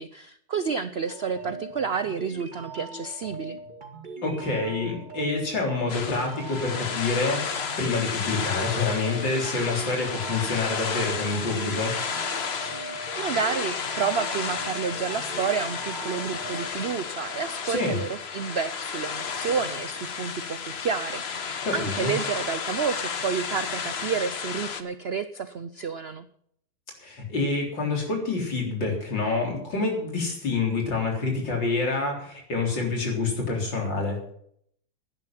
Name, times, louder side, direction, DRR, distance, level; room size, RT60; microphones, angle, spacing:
voice 1, 0.0-3.6 13.1-26.3, right 6 dB, 75° right, 12 dB, 0.5 m, -30 dB
sound 1, 1.1-16.7, right 3 dB, 25° right, 2.3 m, -41 dB
voice 2, 4.2-11.9 17.6-18.0 21.7-22.2 27.0-34.2, left 3 dB, 90° left, 1 dB, 4.4 m, -27 dB
sound 2, 5.9-24.8, left 6 dB, 45° left, 1.0 m, -32 dB
11.5 x 10.5 x 7.5 m, 0.68 s
omnidirectional pair, 1.9 m